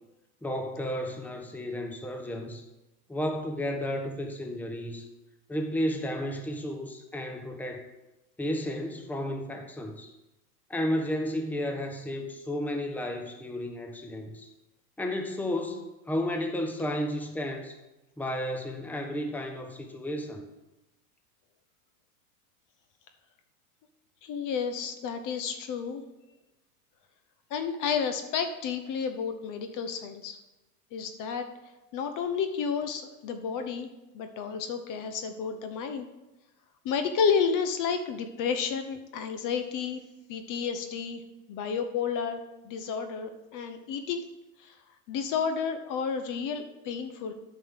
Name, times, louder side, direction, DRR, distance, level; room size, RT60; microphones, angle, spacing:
voice 1, 0.4-2.6 3.1-5.1 5.5-7.9 8.4-10.1 10.7-14.5 15.0-17.7 18.2-20.5, left 1 dB, 5° left, 4 dB, 1.0 m, -32 dB
voice 2, 24.2-26.0 27.5-30.4 30.9-31.5 31.9-33.9 34.1-36.1 36.8-40.0 40.3-41.2 41.5-44.2 44.6-44.8 45.1-47.3, left 6 dB, 40° left, 8 dB, 1.0 m, -31 dB
9.0 x 5.6 x 6.4 m, 1.0 s
hypercardioid pair, 105°, 48 cm